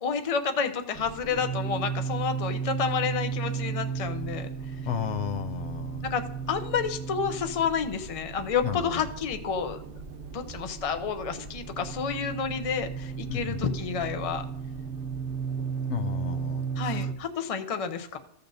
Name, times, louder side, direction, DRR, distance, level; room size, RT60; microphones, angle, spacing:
voice 1, 0.0-4.5 6.0-9.8 10.3-14.4 16.8-18.2, left 6 dB, 40° left, 7 dB, 0.6 m, -30 dB
sound 1, 0.9-17.1, right 6 dB, 55° right, 1.0 m, -34 dB
voice 2, 4.9-6.0 8.6-9.0 13.3-13.6 15.9-17.1, left 9 dB, 85° left, 10 dB, 0.9 m, -33 dB
15.0 x 6.8 x 2.7 m, 0.80 s
omnidirectional pair, 1.1 m